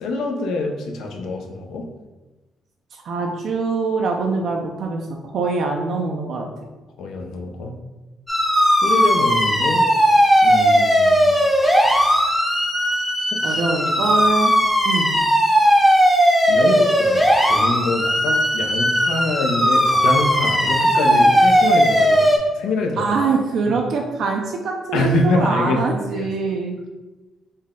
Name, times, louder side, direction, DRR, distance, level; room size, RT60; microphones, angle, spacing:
voice 1, 0.0-1.9 7.0-7.7 8.8-9.9 10.4-11.4 13.4-14.1 16.5-22.3 22.6-23.1 23.7-23.8 24.9-25.8 26.1-26.3, left 2 dB, 80° left, 2 dB, 0.5 m, -25 dB
voice 2, 2.9-6.4 13.4-14.5 14.8-15.1 23.0-26.8, right 4 dB, 70° right, 1 dB, 0.4 m, -23 dB
sound 1, 8.3-22.4, equal, 5° left, 0.6 m, -17 dB
3.9 x 2.1 x 3.5 m, 1.1 s
cardioid pair, 90°, 0 cm